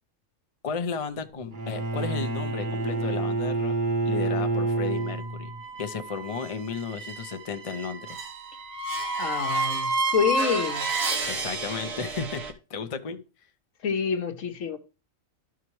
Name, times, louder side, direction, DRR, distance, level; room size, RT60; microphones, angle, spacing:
voice 1, 0.6-3.7 4.0-5.5 5.8-8.3 11.3-12.4 12.7-13.2, left 5 dB, 40° left, 0.5 m, -34 dB
Bowed string instrument, 1.5-5.6, right 2 dB, 40° right, 0.9 m, -28 dB
sound 1, 4.8-12.5, right 2 dB, 80° right, 1.5 m, -31 dB
voice 2, 9.2-10.9 13.8-14.8, left 5 dB, 70° left, 1.3 m, -27 dB
12.5 x 4.8 x 3.1 m
omnidirectional pair, 1.4 m